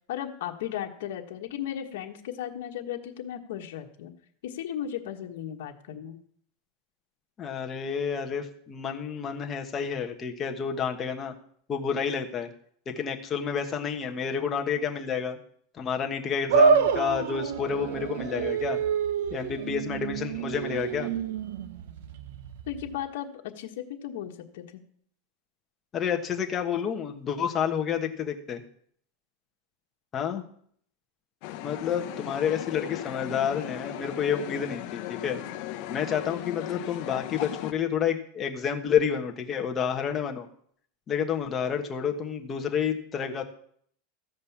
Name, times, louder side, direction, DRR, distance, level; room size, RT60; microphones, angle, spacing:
voice 1, 0.1-4.1 4.4-6.2 22.7-23.3 23.6-24.8, left 10 dB, 75° left, 2 dB, 1.4 m, -36 dB
voice 2, 7.4-11.3 11.7-12.5 12.9-15.4 15.8-18.8 19.3-21.1 25.9-28.6 30.1-30.4 31.6-35.4 35.9-40.5 41.1-43.4, left 7 dB, 25° left, 3 dB, 1.3 m, -29 dB
sound 1, 16.5-23.0, right 5 dB, 75° right, 0.8 m, -27 dB
sound 2, 31.4-37.7, left 13 dB, 50° left, 0.9 m, -37 dB
14.5 x 5.3 x 7.2 m, 0.62 s
supercardioid pair, 150°, 0 cm